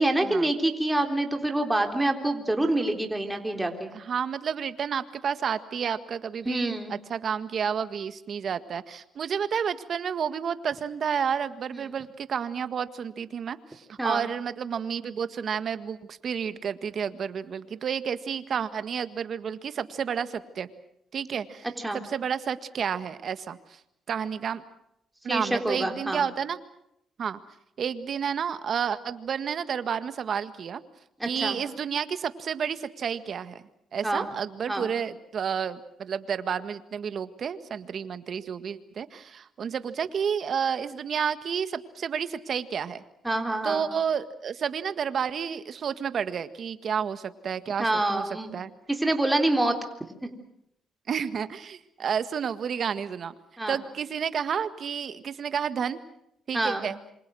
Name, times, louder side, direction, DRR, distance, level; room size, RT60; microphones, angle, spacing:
voice 1, 0.0-3.9 6.5-6.9 14.0-14.2 21.8-22.0 25.3-26.3 31.2-31.6 34.0-34.3 34.7-34.9 43.2-43.9 47.8-48.6 48.9-49.8 50.2-50.3 53.6-53.8 56.5-56.9, right 1 dB, 10° right, 4 dB, 3.6 m, -26 dB
voice 2, 3.9-20.7 21.1-21.7 21.9-23.6 24.1-24.6 25.2-26.6 27.2-27.4 27.8-30.8 31.2-33.6 33.9-43.0 43.6-48.7 51.1-53.3 53.7-56.0 56.5-57.0, right 7 dB, 55° right, 12 dB, 1.7 m, -30 dB
27.5 x 25.5 x 6.3 m, 0.77 s
cardioid pair, 90°, 0 cm